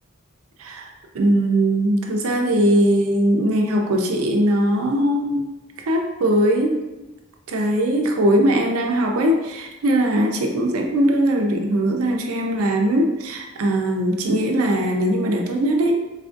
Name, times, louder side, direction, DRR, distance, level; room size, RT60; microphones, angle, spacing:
voice 1, 0.6-0.9 1.1-5.5 5.8-6.8 7.5-16.0, right 1 dB, 85° right, 2 dB, 0.5 m, -20 dB
3.9 x 2.5 x 2.5 m, 1.1 s
head